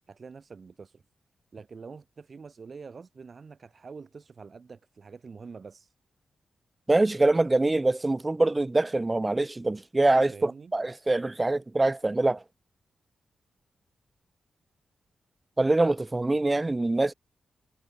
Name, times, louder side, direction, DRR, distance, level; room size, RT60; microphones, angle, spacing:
voice 1, 0.1-1.0 1.5-5.9 10.3-10.7, right 5 dB, 50° right, 4.2 m, -46 dB
voice 2, 6.9-12.4 15.6-17.1, right 2 dB, 25° right, 0.8 m, -24 dB
cardioid pair, 65°, 0 cm